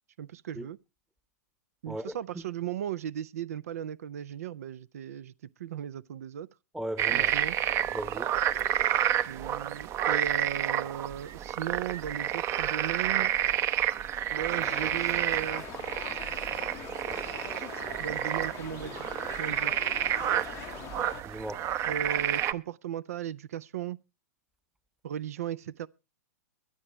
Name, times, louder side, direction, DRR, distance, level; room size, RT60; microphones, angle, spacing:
voice 1, 0.2-0.8 1.8-5.3 5.6-6.5 7.1-7.6 9.3-13.3 14.3-15.7 18.0-19.1 19.4-19.8 21.9-24.0 25.0-25.9, right 10 dB, 65° right, 0.5 m, -36 dB
voice 2, 1.9-2.2 6.7-7.3 7.9-8.3 21.2-21.6, right 1 dB, 5° right, 0.9 m, -37 dB
sound 1, 7.0-22.5, right 11 dB, 30° right, 0.7 m, -30 dB
sound 2, 14.5-21.2, left 15 dB, 35° left, 0.6 m, -43 dB
23.0 x 8.9 x 3.1 m
hypercardioid pair, 105°, 9 cm